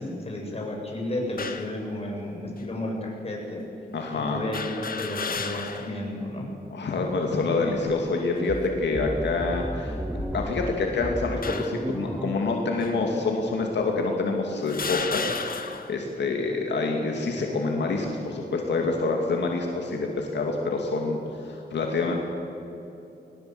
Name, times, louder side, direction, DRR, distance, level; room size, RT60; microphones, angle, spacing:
voice 1, 0.0-3.6 4.1-6.5, left 1 dB, 35° left, -1 dB, 7.1 m, -32 dB
sound 1, 1.4-1.8 2.6-2.7 4.5-6.0 6.4-6.5 7.7-8.1 8.8-9.0 10.0-10.8 11.4-11.9 12.8-12.9 13.8-13.9 14.7-16.0, left 5 dB, 55° left, 1.7 m, -34 dB
voice 2, 3.9-4.4 6.7-22.2, left 3 dB, 80° left, 1 dB, 2.4 m, -27 dB
sound 2, 8.5-14.1, right 1 dB, 10° right, 0.8 m, -34 dB
20.5 x 20.0 x 7.9 m, 2.8 s
cardioid pair, 80°, 18 cm